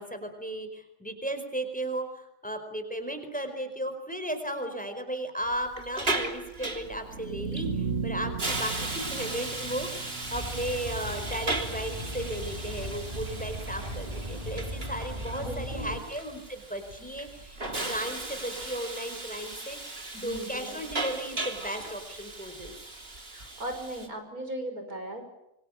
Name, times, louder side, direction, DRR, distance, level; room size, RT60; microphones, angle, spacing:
voice 1, 0.0-17.6 17.8-19.9 20.2-22.7, right 1 dB, 5° left, 7 dB, 4.6 m, -35 dB
Hiss, 5.5-24.1, right 2 dB, 40° right, 3.4 m, -37 dB
sound 1, 7.0-12.9, right 5 dB, 60° right, 1.8 m, -37 dB
sound 2, 10.3-16.0, equal, 25° right, 3.0 m, -37 dB
voice 2, 15.4-15.9 20.1-20.8 23.3-25.3, right 1 dB, 80° right, 6 dB, 6.6 m, -38 dB
26.5 x 25.0 x 9.0 m, 0.86 s
omnidirectional pair, 1.5 m